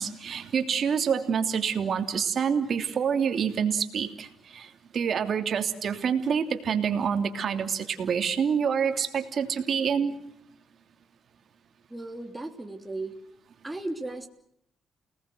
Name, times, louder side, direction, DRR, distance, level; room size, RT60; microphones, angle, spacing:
voice 1, 0.0-10.1, right 7 dB, 55° right, 6 dB, 3.0 m, -27 dB
voice 2, 11.9-13.2 13.6-14.3, right 2 dB, 10° right, 3 dB, 3.2 m, -35 dB
29.5 x 19.0 x 7.9 m, 0.69 s
cardioid pair, 90°, 0 cm